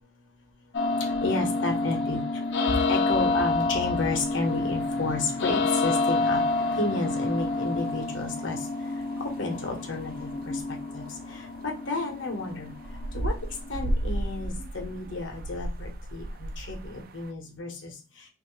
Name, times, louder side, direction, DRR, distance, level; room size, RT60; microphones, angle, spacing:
sound 1, 0.7-14.7, left 3 dB, 65° left, 0.6 m, -29 dB
voice 1, 1.2-2.2 2.9-6.4 6.8-8.6 9.2-12.7 13.1-13.3 13.7-17.9, left 3 dB, 80° left, 1 dB, 1.2 m, -32 dB
sound 2, 4.3-17.3, right 1 dB, 50° right, 0.3 m, -37 dB
3.2 x 2.9 x 3.1 m, 0.31 s
head